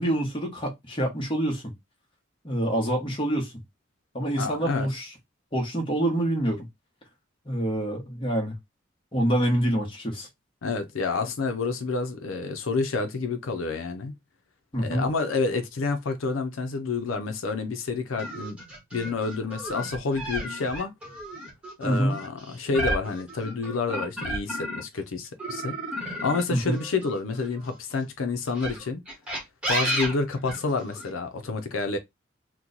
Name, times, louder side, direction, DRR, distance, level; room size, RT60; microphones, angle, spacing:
voice 1, 0.0-1.7 2.4-3.5 4.1-5.1 5.5-6.7 7.4-8.5 9.1-10.3 14.7-15.0 21.8-22.2 26.5-26.8, right 1 dB, 25° left, 1.0 m, -26 dB
voice 2, 4.4-4.9 10.6-14.1 14.8-18.6 18.9-20.9 21.8-29.0 29.7-32.0, left 4 dB, 90° left, 0.5 m, -29 dB
sound 1, 18.2-25.0 25.4-27.8 28.5-31.1, right 1 dB, 5° right, 1.0 m, -33 dB
2.9 x 2.1 x 3.7 m
head